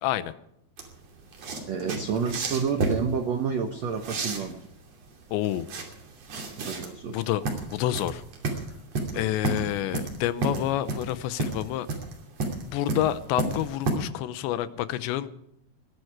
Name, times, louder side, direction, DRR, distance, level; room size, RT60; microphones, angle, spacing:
voice 1, 0.0-0.3 5.3-5.7 7.1-8.2 9.1-11.9 12.6-15.3, left 13 dB, 85° left, 14 dB, 3.1 m, -28 dB
sound 1, 0.8-13.9, right 3 dB, 40° right, 3.3 m, -32 dB
voice 2, 1.7-4.6 6.6-7.2 9.1-9.3, right 6 dB, 75° right, 5 dB, 1.5 m, -29 dB
20.0 x 13.0 x 4.9 m, 0.74 s
omnidirectional pair, 5.0 m